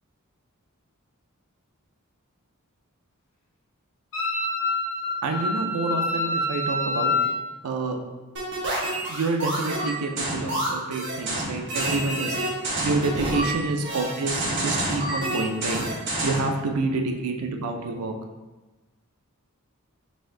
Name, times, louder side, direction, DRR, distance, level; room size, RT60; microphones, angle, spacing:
Wind instrument woodwind instrument, 4.1-7.4, left 2 dB, 60° left, 1.2 m, -26 dB
voice 1, 5.2-7.1 7.6-8.0 9.1-15.8 16.2-18.1, right 3 dB, 80° right, 4 dB, 0.5 m, -28 dB
sound 1, 8.4-16.5, right 1 dB, 55° right, 0.9 m, -28 dB
4.1 x 2.6 x 3.7 m, 1.2 s
head